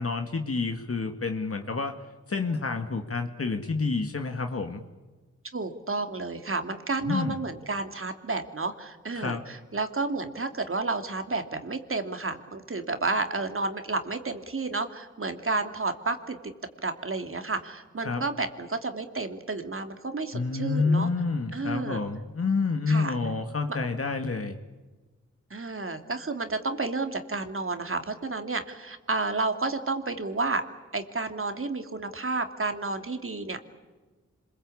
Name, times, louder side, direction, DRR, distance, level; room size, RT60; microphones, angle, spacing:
voice 1, 0.0-2.0 2.3-4.8 7.1-7.4 9.2-9.4 18.0-18.2 20.3-24.6, left 4 dB, 50° left, 5 dB, 2.0 m, -28 dB
voice 2, 5.5-16.5 16.8-21.1 21.5-22.0 22.9-23.2 25.5-30.6 30.9-33.6, right 3 dB, 45° right, 6 dB, 2.9 m, -31 dB
26.5 x 22.0 x 8.6 m, 1.3 s
cardioid pair, 45°, 29 cm